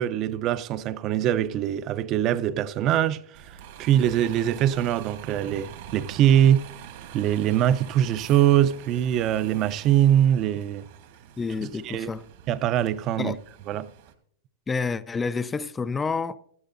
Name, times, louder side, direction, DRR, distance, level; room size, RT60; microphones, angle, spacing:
voice 1, 0.0-3.5 3.8-6.7 7.1-10.8 11.8-12.1 12.5-13.4 13.7-13.9, right 11 dB, 40° right, 0.5 m, -22 dB
Bus, 3.3-14.1, right 9 dB, 65° right, 1.5 m, -45 dB
voice 2, 11.4-12.3 13.2-13.4 14.7-16.4, left 4 dB, 15° left, 0.4 m, -29 dB
17.0 x 13.0 x 2.6 m
hypercardioid pair, 125°, 0 cm